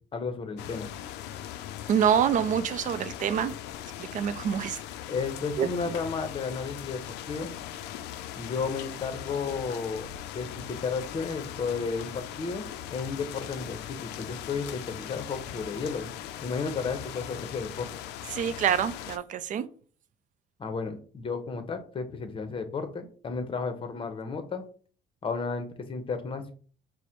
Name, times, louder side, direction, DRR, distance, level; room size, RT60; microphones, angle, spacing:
voice 1, 0.1-0.9 5.1-7.5 8.4-10.1 10.3-12.1 12.4-16.1 16.4-17.9 20.6-24.6 25.2-26.5, left 5 dB, 30° left, 0.7 m, -33 dB
sound 1, 0.6-19.2, left 11 dB, 85° left, 0.4 m, -40 dB
voice 2, 1.9-3.5 4.0-4.8 5.6-5.7 18.3-19.7, right 8 dB, 50° right, 0.4 m, -26 dB
4.8 x 2.1 x 4.3 m
cardioid pair, 110°, 17 cm